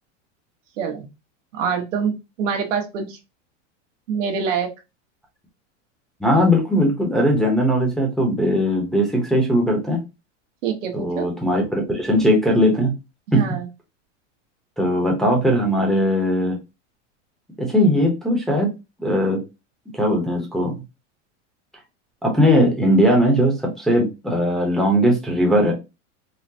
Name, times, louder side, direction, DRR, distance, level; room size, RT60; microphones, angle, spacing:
voice 1, 0.8-1.1 1.5-3.2 4.1-4.7 10.6-11.3 13.3-13.7, right 6 dB, 85° right, 3 dB, 1.0 m, -25 dB
voice 2, 6.2-10.0 10.9-12.9 13.3-13.4 14.8-16.6 17.6-18.7 19.0-19.4 19.9-20.7 22.2-25.7, equal, ahead, -1 dB, 0.7 m, -19 dB
3.8 x 2.1 x 2.7 m, 0.26 s
supercardioid pair, 145°, 37 cm